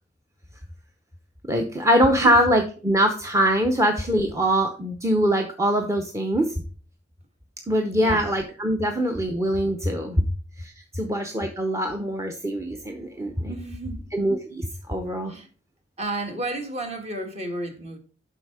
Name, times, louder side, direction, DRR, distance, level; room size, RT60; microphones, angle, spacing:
voice 1, 1.5-6.5 7.7-10.2 10.6-13.5 14.1-15.3, equal, 15° right, 0.8 m, -23 dB
voice 2, 13.5-14.1 15.3-15.5 16.0-18.0, right 1 dB, 35° right, 1.6 m, -31 dB
7.8 x 5.5 x 4.8 m
head